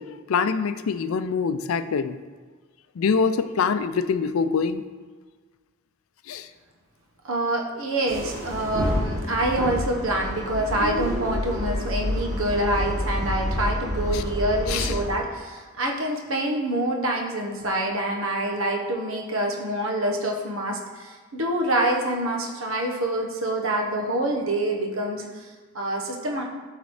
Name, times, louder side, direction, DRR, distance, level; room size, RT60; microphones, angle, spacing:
voice 1, 0.0-2.1 3.0-4.8 6.3-6.5 14.1-14.2 14.7-14.9, left 5 dB, 85° left, 11 dB, 0.4 m, -24 dB
voice 2, 7.2-26.4, right 1 dB, 80° right, 1 dB, 1.2 m, -26 dB
sound 1, 8.1-15.1, equal, 30° right, 1.7 m, -28 dB
12.0 x 4.0 x 3.2 m, 1.4 s
head